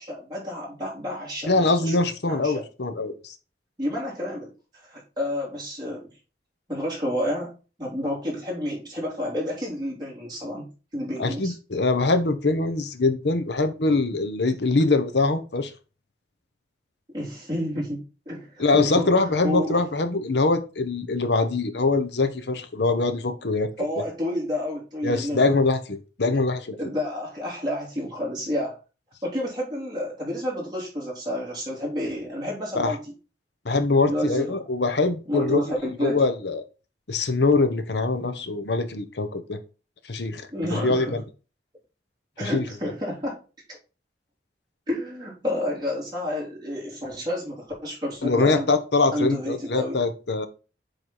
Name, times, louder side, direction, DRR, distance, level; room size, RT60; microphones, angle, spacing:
voice 1, 0.0-2.0 2.2-2.6 3.8-4.5 4.8-6.1 6.7-7.5 7.8-11.5 17.1-19.8 23.8-25.6 26.8-28.7 29.2-33.1 34.0-34.7 35.3-36.2 40.5-41.2 42.4-43.4 44.9-48.8 49.1-50.0, left 1 dB, 25° right, 3.2 m, -30 dB
voice 2, 1.4-3.3 11.2-15.7 18.6-23.7 25.0-26.7 32.7-33.0 33.6-35.6 36.0-36.6 37.1-39.6 40.1-41.2 42.4-42.6 48.2-50.5, left 3 dB, 75° left, 0.9 m, -23 dB
7.7 x 3.2 x 4.2 m
head